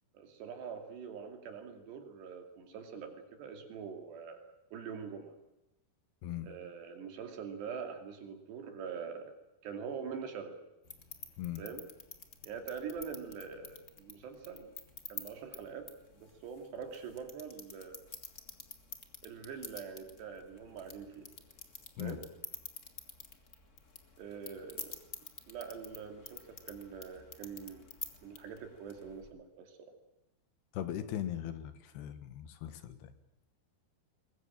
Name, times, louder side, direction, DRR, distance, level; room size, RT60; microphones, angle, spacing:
voice 1, 0.1-5.3 6.4-9.3 9.6-10.6 11.6-11.8 12.4-14.7 15.1-18.0 19.2-21.3 22.0-22.2 24.2-25.0 25.5-27.9 28.2-29.8, right 6 dB, 80° right, 5 dB, 4.7 m, -44 dB
sound 1, 10.8-29.3, left 4 dB, 55° left, 0.8 m, -50 dB
voice 2, 30.7-33.1, left 11 dB, 75° left, 10 dB, 3.4 m, -39 dB
22.0 x 21.0 x 8.9 m, 0.94 s
omnidirectional pair, 4.8 m